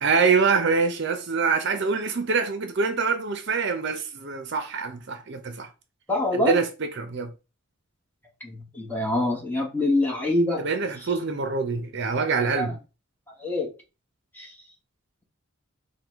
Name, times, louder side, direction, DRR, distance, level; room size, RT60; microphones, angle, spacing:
voice 1, 0.0-5.7 6.3-7.3 10.6-12.8, right 5 dB, 55° right, 0.6 m, -25 dB
voice 2, 6.1-6.6 8.4-10.6 12.6-12.7 13.4-13.7 14.3-14.5, left 1 dB, 10° left, 1.0 m, -25 dB
4.6 x 2.2 x 3.5 m
head